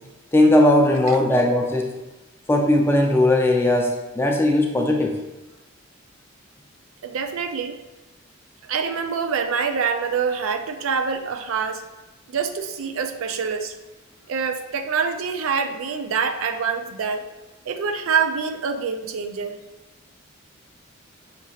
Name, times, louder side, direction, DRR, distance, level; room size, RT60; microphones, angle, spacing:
voice 1, 0.3-1.9 2.5-5.2, left 1 dB, 10° left, 1 dB, 0.4 m, -18 dB
voice 2, 7.0-7.8 8.7-11.8 12.3-13.7 14.3-17.3 17.7-19.6, right 6 dB, 80° right, 7 dB, 0.4 m, -25 dB
5.8 x 2.8 x 2.8 m, 1.1 s
head